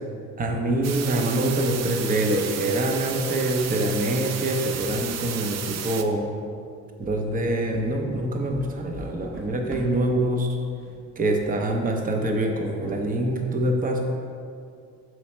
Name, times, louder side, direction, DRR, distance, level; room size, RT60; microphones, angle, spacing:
voice 1, 0.4-6.4 7.0-10.5 11.2-14.0, right 1 dB, 30° right, 3 dB, 0.7 m, -25 dB
sound 1, 0.8-6.0, right 8 dB, 60° right, 0.5 m, -33 dB
sound 2, 7.0-10.2 10.7-11.1 11.3-11.6 12.1-12.3 12.8-13.4, right 1 dB, 45° right, 1.2 m, -41 dB
6.1 x 4.7 x 4.3 m, 2.3 s
cardioid pair, 90°, 30 cm